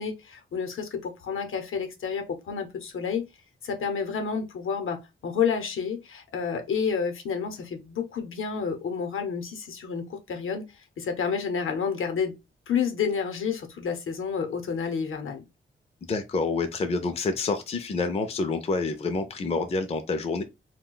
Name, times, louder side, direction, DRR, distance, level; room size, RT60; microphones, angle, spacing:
voice 1, 0.0-3.3 3.6-10.7 11.0-12.3 12.7-15.5, left 6 dB, 75° left, 0.8 m, -30 dB
voice 2, 16.0-20.4, left 3 dB, 30° left, 0.4 m, -28 dB
2.3 x 2.2 x 3.7 m
wide cardioid pair, 140°, 21 cm